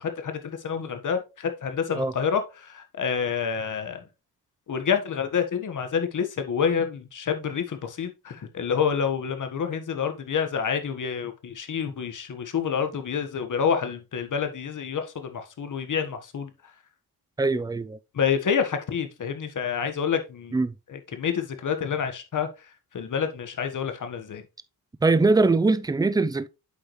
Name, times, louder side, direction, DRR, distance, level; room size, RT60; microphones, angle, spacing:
voice 1, 0.0-4.0 4.7-16.5 18.1-20.6 20.9-22.5 22.9-24.4, left 7 dB, 55° left, 1.4 m, -28 dB
voice 2, 17.4-18.0 20.5-20.7 25.0-26.5, right 3 dB, 10° right, 0.5 m, -22 dB
8.2 x 5.2 x 3.1 m
cardioid pair, 85°, 37 cm